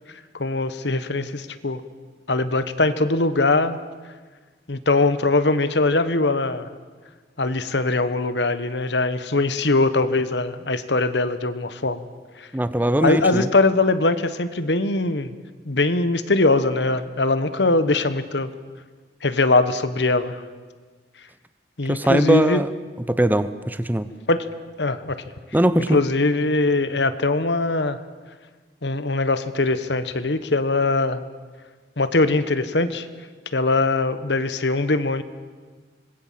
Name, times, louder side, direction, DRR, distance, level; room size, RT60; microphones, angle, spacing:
voice 1, 0.4-1.8 2.3-3.8 4.7-6.7 7.4-12.0 12.4-12.5 13.0-15.3 15.6-18.5 19.2-20.4 21.8-22.6 24.3-24.5 24.8-25.2 25.9-28.0 28.8-31.2 32.0-33.1 33.5-35.2, left 2 dB, 80° left, 12 dB, 1.3 m, -21 dB
voice 2, 12.5-13.5 21.9-22.7 23.1-24.1 25.5-26.0, right 1 dB, 10° right, 13 dB, 0.8 m, -20 dB
26.5 x 20.0 x 7.6 m, 1.4 s
head